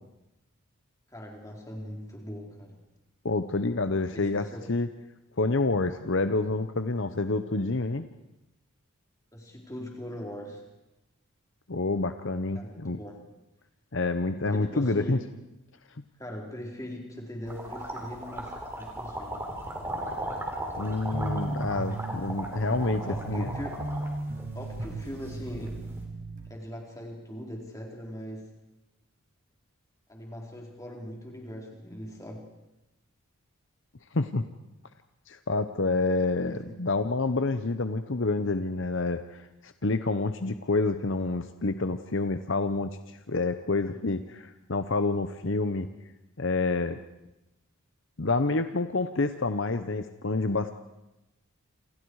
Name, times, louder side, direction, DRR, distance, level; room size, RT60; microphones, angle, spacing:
voice 1, 1.1-2.8 4.1-4.7 9.3-10.6 12.5-13.2 14.4-15.2 16.2-19.4 22.5-22.8 23.1-23.8 24.5-25.8 26.4-28.5 30.1-32.5 36.5-36.7 43.8-44.3, equal, 15° left, 0 dB, 4.3 m, -41 dB
voice 2, 3.2-4.9 5.4-8.0 11.7-13.0 13.9-15.2 20.8-23.5 34.1-34.4 35.3-45.9 46.4-47.0 48.2-50.7, left 3 dB, 55° left, 10 dB, 0.9 m, -28 dB
sound 1, 17.4-26.0, right 1 dB, 10° right, 4.0 m, -37 dB
sound 2, 21.1-26.4, right 2 dB, 40° right, 5.9 m, -36 dB
28.5 x 27.5 x 4.8 m, 0.94 s
head